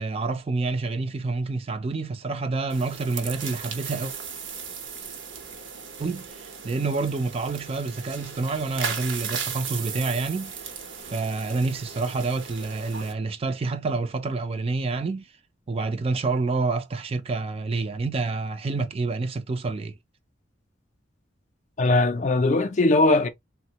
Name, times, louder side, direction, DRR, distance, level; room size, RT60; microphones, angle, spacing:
voice 1, 0.0-4.1 6.0-10.5 11.1-15.3 15.7-19.9, right 3 dB, 30° right, 0.4 m, -28 dB
sound 1, 2.7-13.1, right 6 dB, 80° right, 0.8 m, -36 dB
voice 2, 21.8-23.3, left 2 dB, 40° left, 0.4 m, -20 dB
3.5 x 2.1 x 2.7 m
head